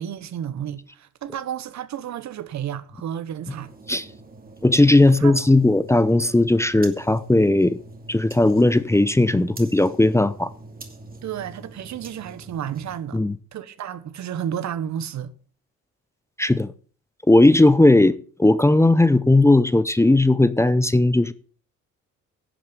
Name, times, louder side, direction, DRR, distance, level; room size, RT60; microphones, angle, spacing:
voice 1, 0.0-3.7 5.2-5.5 11.2-13.2 13.5-15.3, right 9 dB, 65° right, 1.2 m, -32 dB
sound 1, 3.5-13.0, right 2 dB, 30° right, 2.5 m, -43 dB
voice 2, 4.6-7.8 8.1-10.5 13.1-13.3 16.4-16.7 17.3-21.3, left 2 dB, 10° left, 0.7 m, -17 dB
11.5 x 7.6 x 6.9 m
cardioid pair, 90°, 30 cm